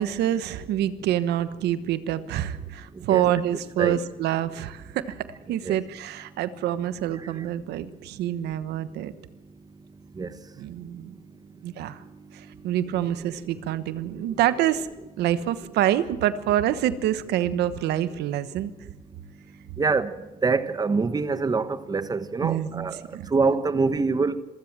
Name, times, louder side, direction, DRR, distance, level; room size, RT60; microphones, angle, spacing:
voice 1, 0.0-5.2 5.5-9.1 10.6-11.1 11.6-12.0 12.3-14.9 15.2-18.7 22.4-23.3, right 11 dB, 80° right, 1.2 m, -26 dB
voice 2, 19.8-20.1 20.4-23.0 23.3-24.4, right 4 dB, 20° right, 1.2 m, -24 dB
26.0 x 15.5 x 7.4 m
cardioid pair, 110°, 17 cm